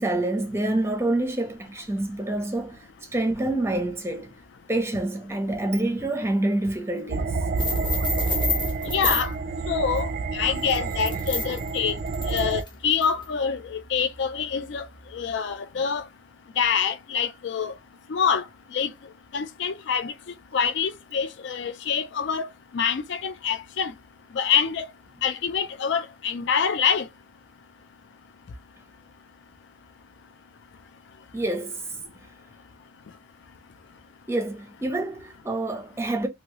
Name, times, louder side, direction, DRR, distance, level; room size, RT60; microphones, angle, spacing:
voice 1, 0.0-4.4 4.7-7.4 31.3-31.8 34.3-36.3, right 2 dB, 15° right, 0.7 m, -27 dB
sound 1, 7.1-12.6, right 4 dB, 50° right, 0.3 m, -28 dB
sound 2, 7.6-9.3 10.6-13.2, left 3 dB, 20° left, 0.9 m, -30 dB
voice 2, 8.9-9.3 9.7-11.9 12.3-14.9 15.1-16.1 16.6-17.7 18.1-18.4 18.7-18.9 19.3-20.1 20.5-22.5 22.7-23.9 24.3-24.9 25.2-27.1, left 6 dB, 60° left, 0.4 m, -26 dB
2.9 x 2.7 x 2.9 m
head